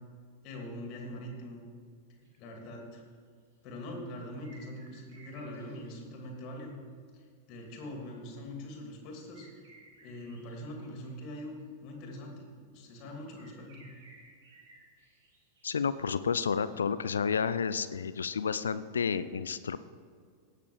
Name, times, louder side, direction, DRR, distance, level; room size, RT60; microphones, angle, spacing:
voice 1, 0.4-1.6 2.1-3.0 3.6-6.7 7.1-9.5 10.0-13.9, left 1 dB, 40° left, 1 dB, 2.7 m, -43 dB
sound 1, 2.2-2.4 3.4-3.5 4.2-6.1 9.3-11.1 13.3-16.0 16.3-16.5, right 2 dB, 55° right, 3.6 m, -58 dB
voice 2, 15.6-19.8, left 6 dB, 70° left, 14 dB, 0.4 m, -31 dB
17.5 x 6.8 x 4.8 m, 2.1 s
figure-of-eight pair, 90°, 0 cm